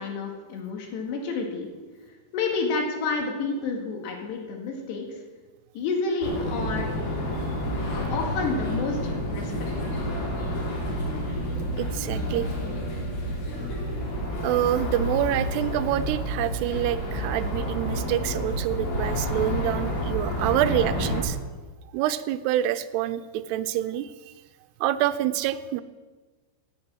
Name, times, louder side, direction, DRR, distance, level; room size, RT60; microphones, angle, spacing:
voice 1, 0.0-1.7 2.3-5.1 5.8-6.9 7.9-9.5 9.8-9.9, left 4 dB, 90° left, 1 dB, 4.1 m, -29 dB
sound 1, 6.2-21.2, equal, 65° left, 4.7 m, -29 dB
voice 2, 11.8-12.5 14.4-21.4 21.9-24.1 24.8-25.8, right 12 dB, 85° right, 12 dB, 2.6 m, -26 dB
17.5 x 8.6 x 6.2 m, 1.3 s
omnidirectional pair, 4.8 m